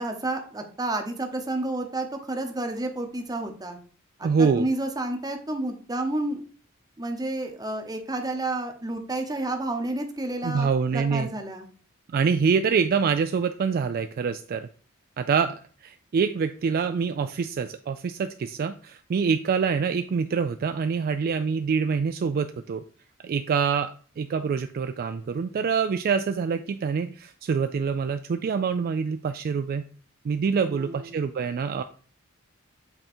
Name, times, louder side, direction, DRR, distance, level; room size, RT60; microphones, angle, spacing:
voice 1, 0.0-3.8 4.2-6.4 7.0-11.7 30.6-31.2, right 2 dB, 20° right, 5 dB, 0.9 m, -30 dB
voice 2, 4.2-4.6 10.4-11.3 12.1-14.7 15.2-22.8 23.2-29.8 30.2-31.8, right 5 dB, 45° right, 9 dB, 0.3 m, -25 dB
7.9 x 3.6 x 4.3 m, 0.43 s
head